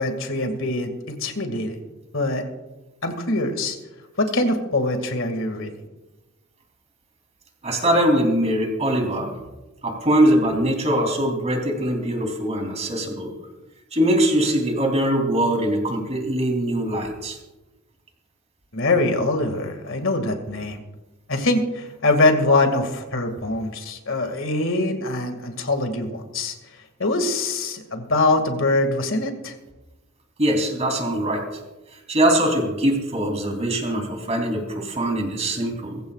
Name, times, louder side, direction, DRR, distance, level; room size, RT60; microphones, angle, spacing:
voice 1, 0.0-1.8 2.1-2.4 3.0-3.8 4.2-5.7 18.7-20.8 21.3-26.6 27.0-29.5, left 2 dB, 65° left, 6 dB, 2.1 m, -23 dB
voice 2, 7.6-9.3 9.8-13.3 13.9-17.4 30.4-31.4 31.9-36.0, right 1 dB, 30° right, 2 dB, 3.2 m, -22 dB
23.0 x 15.0 x 2.4 m, 1.1 s
head